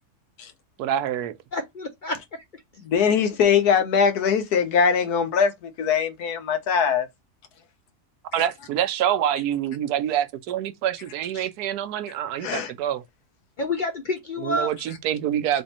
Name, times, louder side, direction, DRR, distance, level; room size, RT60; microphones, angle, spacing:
voice 1, 0.8-1.4 8.3-13.0 14.4-15.6, right 10 dB, 90° right, 1.2 m, -26 dB
voice 2, 1.5-2.6 13.6-14.7, left 2 dB, 55° left, 0.5 m, -29 dB
voice 3, 2.9-7.1 12.4-12.7, left 6 dB, 80° left, 1.4 m, -21 dB
3.6 x 3.4 x 4.2 m
omnidirectional pair, 1.6 m